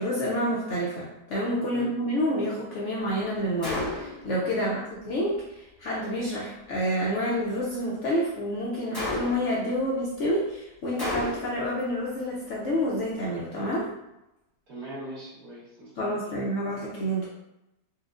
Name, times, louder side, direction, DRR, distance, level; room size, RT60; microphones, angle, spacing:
voice 1, 0.0-13.9 16.0-17.3, equal, 65° left, -5 dB, 0.8 m, -28 dB
Gunshot gunfire, 3.6-4.3 8.9-9.6 11.0-11.7, left 2 dB, 15° left, 1.0 m, -31 dB
voice 2, 4.5-4.8 14.7-16.2, right 1 dB, 70° right, -12 dB, 1.7 m, -41 dB
4.3 x 2.4 x 2.4 m, 0.91 s
omnidirectional pair, 1.7 m